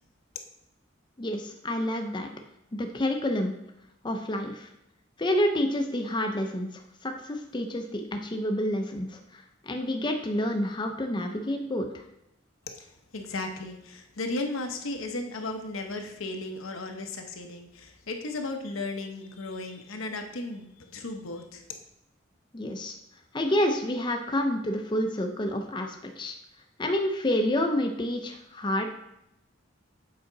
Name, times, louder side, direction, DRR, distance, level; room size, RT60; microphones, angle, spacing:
voice 1, 1.2-2.3 2.7-3.5 4.0-4.7 5.2-12.0 22.5-23.0 23.3-26.3 26.8-28.9, left 1 dB, 25° left, 4 dB, 0.6 m, -29 dB
voice 2, 12.7-21.6, left 2 dB, 85° left, 4 dB, 0.9 m, -35 dB
7.8 x 5.0 x 3.9 m, 0.82 s
head